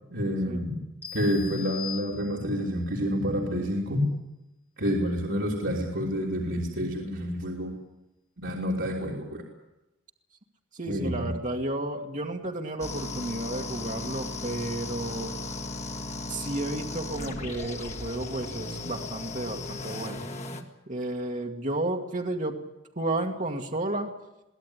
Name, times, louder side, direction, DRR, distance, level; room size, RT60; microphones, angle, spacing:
voice 1, 0.1-0.8 1.1-4.1 4.8-7.7 8.4-9.4 10.9-11.3, equal, 65° right, -2 dB, 3.4 m, -28 dB
sound 1, 1.0-2.7, left 9 dB, 10° left, 2.7 m, -40 dB
voice 2, 10.7-15.3 16.3-20.2 20.9-22.6 23.0-24.1, right 2 dB, 40° right, 2 dB, 2.0 m, -32 dB
sound 2, 12.8-20.6, left 2 dB, 35° left, 2.1 m, -36 dB
23.0 x 17.0 x 9.9 m, 0.95 s
head